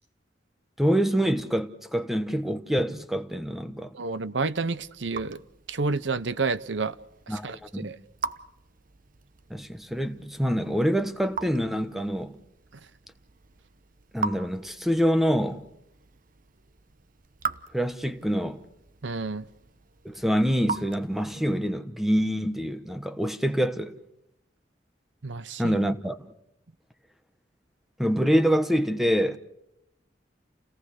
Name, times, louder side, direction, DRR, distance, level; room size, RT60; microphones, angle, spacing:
voice 1, 0.8-3.9 7.3-7.9 9.5-12.4 14.1-15.7 17.7-18.6 20.0-23.9 25.6-26.3 28.0-29.4, equal, ahead, 1.1 m, -26 dB
voice 2, 3.9-5.4 5.7-7.0 7.3-8.0 19.0-19.4 25.2-25.8, right 4 dB, 80° right, 0.8 m, -30 dB
Raindrop / Drip, 4.4-21.6, right 5 dB, 50° right, 0.9 m, -41 dB
29.0 x 18.0 x 6.7 m
head